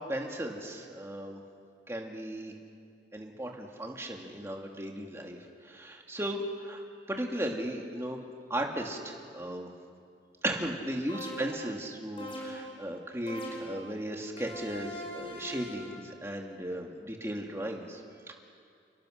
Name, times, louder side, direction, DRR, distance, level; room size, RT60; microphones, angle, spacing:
voice 1, 0.0-1.4 1.9-2.5 3.1-8.2 8.5-9.7 10.4-18.3, right 1 dB, 15° right, 1 dB, 2.3 m, -36 dB
sound 1, 11.1-11.7 12.2-12.8 13.3-13.9 14.4-16.0, equal, 30° left, 5.2 m, -41 dB
29.5 x 21.5 x 6.5 m, 2.3 s
head